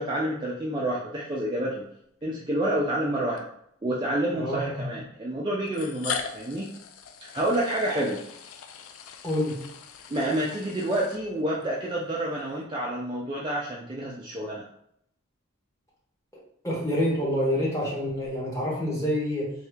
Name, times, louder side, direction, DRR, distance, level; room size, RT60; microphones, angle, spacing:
voice 1, 0.0-1.8 2.2-3.5 3.8-6.7 7.2-8.2 10.1-14.6, right 1 dB, 20° right, -4 dB, 0.4 m, -28 dB
sound 1, 2.2-2.3 3.4-3.5 4.6-4.7 5.7-11.7, left 7 dB, 80° left, 0.4 m, -40 dB
voice 2, 4.3-4.7 9.2-9.6 16.6-19.5, equal, 15° left, -6 dB, 1.1 m, -27 dB
2.7 x 2.7 x 3.4 m, 0.72 s
head